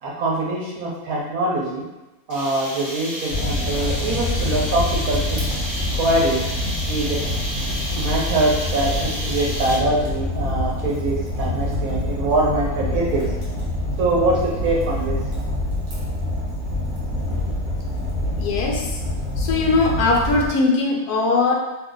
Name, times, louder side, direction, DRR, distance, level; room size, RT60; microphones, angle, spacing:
voice 1, 0.0-1.8 2.3-5.5 5.9-6.4 6.8-7.2 7.6-13.3 14.0-15.2, right 2 dB, 65° right, -3 dB, 1.0 m, -23 dB
sound 1, 2.3-10.0, equal, 35° left, 0.8 m, -31 dB
Fire, 3.3-20.5, left 1 dB, 45° right, 0.7 m, -26 dB
voice 2, 18.4-19.0 19.4-21.5, left 3 dB, 75° left, -1 dB, 1.1 m, -20 dB
2.6 x 2.3 x 3.7 m, 1.0 s
omnidirectional pair, 1.7 m